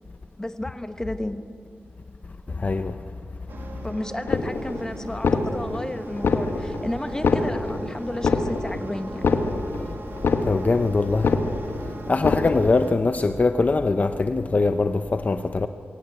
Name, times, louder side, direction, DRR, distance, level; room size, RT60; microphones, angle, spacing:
voice 1, 0.4-1.5 3.8-9.2, left 1 dB, 15° left, 9 dB, 1.2 m, -32 dB
voice 2, 2.5-3.0 10.4-11.3 12.1-15.7, left 3 dB, 40° left, 9 dB, 0.7 m, -22 dB
sound 1, 3.5-12.9, right 2 dB, 65° right, 2.3 m, -41 dB
sound 2, 4.3-4.8 5.1-5.8 6.1-6.8 7.1-7.8 8.1-8.8 9.1-9.8 10.1-10.8 11.1-11.8 12.1-12.8, left 4 dB, 75° left, 1.5 m, -24 dB
23.0 x 17.0 x 8.3 m, 2.4 s
wide cardioid pair, 90°, 4 cm